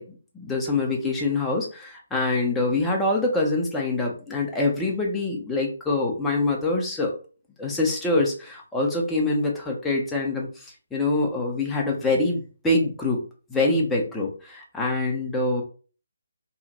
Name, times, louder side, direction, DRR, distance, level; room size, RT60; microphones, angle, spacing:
voice 1, 0.0-7.2 7.6-13.2 13.5-15.6, left 2 dB, 5° left, -2 dB, 0.7 m, -25 dB
2.9 x 2.4 x 3.8 m, 0.38 s
figure-of-eight pair, 145°, 0 cm